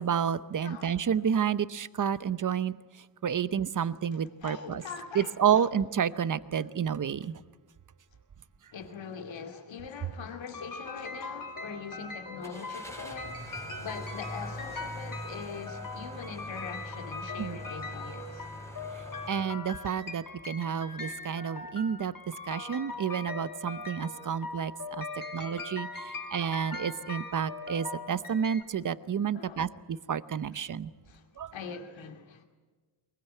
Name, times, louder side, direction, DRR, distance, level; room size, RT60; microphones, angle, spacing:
voice 1, 0.0-2.7 3.2-4.8 5.1-7.4 17.4-17.6 19.3-22.1 22.5-25.1 25.3-30.9 31.4-31.5, right 8 dB, 40° right, 0.8 m, -30 dB
voice 2, 0.6-1.1 4.1-5.7 8.7-18.5 24.2-24.3 25.1-25.6 26.2-26.3 29.3-29.6 30.5-30.7 31.1-32.5, left 6 dB, 70° left, 2.5 m, -43 dB
sound 1, 10.5-28.6, left 3 dB, 45° left, 5.3 m, -41 dB
Car / Engine starting, 12.4-19.3, equal, 5° left, 3.9 m, -43 dB
23.0 x 22.0 x 9.2 m
wide cardioid pair, 155°, 47 cm